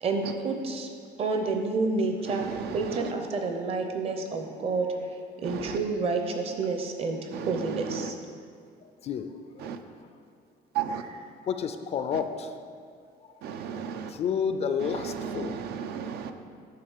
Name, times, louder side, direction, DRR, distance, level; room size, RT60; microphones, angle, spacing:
voice 1, 0.0-0.9 1.2-4.9 5.4-8.2, right 3 dB, 35° right, 4 dB, 0.7 m, -29 dB
voice 2, 2.3-3.1 5.4-5.8 7.3-8.1 9.6-9.8 10.7-11.0 12.1-12.2 13.4-14.1 14.8-16.3, right 8 dB, 75° right, 8 dB, 0.5 m, -35 dB
voice 3, 11.5-12.5 14.2-15.5, left 7 dB, 40° left, 9 dB, 0.4 m, -29 dB
9.6 x 3.7 x 6.5 m, 2.3 s
cardioid pair, 175°, 17 cm